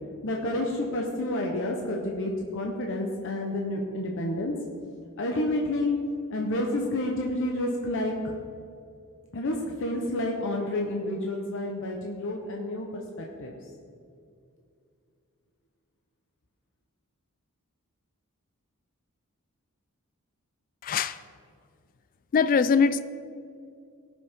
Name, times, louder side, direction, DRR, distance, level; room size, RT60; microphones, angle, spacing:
voice 1, 0.2-4.5 5.2-5.9 6.3-8.4 9.3-13.5, left 1 dB, 60° left, 0 dB, 0.9 m, -29 dB
voice 2, 20.8-21.2 22.3-23.0, left 5 dB, 40° left, 13 dB, 0.3 m, -22 dB
18.0 x 6.2 x 3.6 m, 2.4 s
head